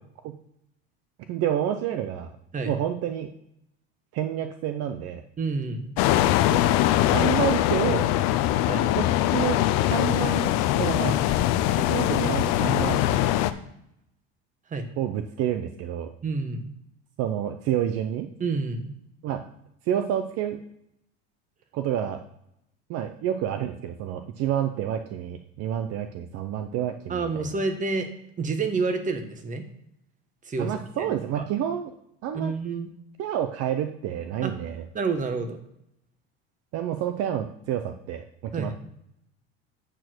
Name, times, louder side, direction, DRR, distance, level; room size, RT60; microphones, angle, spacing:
voice 1, 1.3-2.3 2.6-3.3 4.1-5.2 7.1-8.1 8.9-9.6 9.9-11.2 11.8-13.3 15.0-16.1 17.2-18.3 19.2-19.4 19.9-20.6 21.7-22.2 22.9-27.4 30.6-31.9 32.2-32.5 33.2-34.9 36.7-38.7, right 10 dB, 50° right, 8 dB, 0.8 m, -29 dB
voice 2, 5.4-5.9 8.7-8.9 14.7-14.9 16.2-16.7 18.4-18.9 27.1-28.1 28.4-29.6 30.5-30.7 31.0-31.1 32.3-32.9 34.4-34.5 34.9-35.6 38.5-38.7, right 4 dB, 25° right, 7 dB, 1.3 m, -28 dB
sound 1, 6.0-13.5, left 13 dB, 60° left, 0.7 m, -22 dB
9.0 x 4.5 x 6.1 m, 0.78 s
supercardioid pair, 110°, 31 cm